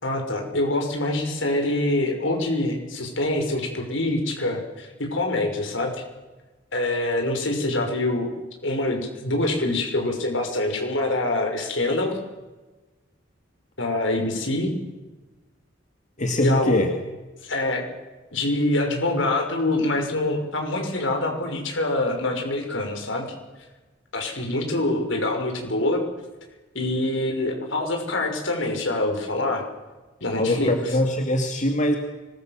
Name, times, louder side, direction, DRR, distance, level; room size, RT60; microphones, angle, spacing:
voice 1, 0.0-5.9 6.7-8.3 8.6-12.2 13.8-14.7 16.4-16.8 17.4-17.8 18.3-23.3 24.1-26.0 26.7-29.7 30.2-30.9, left 2 dB, 75° left, 3 dB, 6.0 m, -25 dB
voice 2, 16.2-16.9 30.4-32.0, left 1 dB, 40° left, 3 dB, 2.3 m, -22 dB
25.5 x 21.0 x 7.5 m, 1.2 s
head